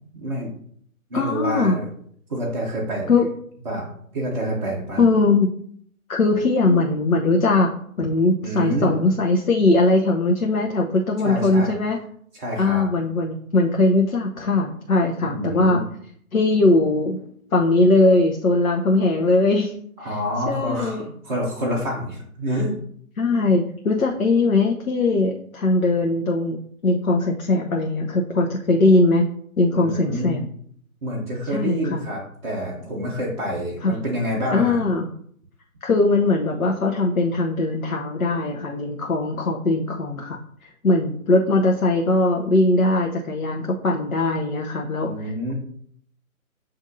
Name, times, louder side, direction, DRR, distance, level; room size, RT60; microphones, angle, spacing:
voice 1, 0.1-0.5 1.1-1.9 2.3-3.1 3.6-3.9 4.1-5.1 8.4-9.0 11.2-11.7 12.4-12.8 15.3-15.9 20.0-22.8 29.7-30.4 31.0-34.8 45.0-45.5, equal, 35° right, -4 dB, 0.9 m, -27 dB
voice 2, 1.1-1.8 3.1-3.3 5.0-5.5 6.1-7.7 8.0-12.0 12.6-15.8 16.3-17.2 17.5-19.7 20.5-21.1 23.2-29.2 29.6-30.4 31.5-32.0 33.8-34.0 34.5-35.1 35.8-40.4 40.8-45.3, left 2 dB, 75° left, 1 dB, 0.7 m, -20 dB
7.6 x 2.6 x 2.6 m, 0.63 s
figure-of-eight pair, 145°, 43 cm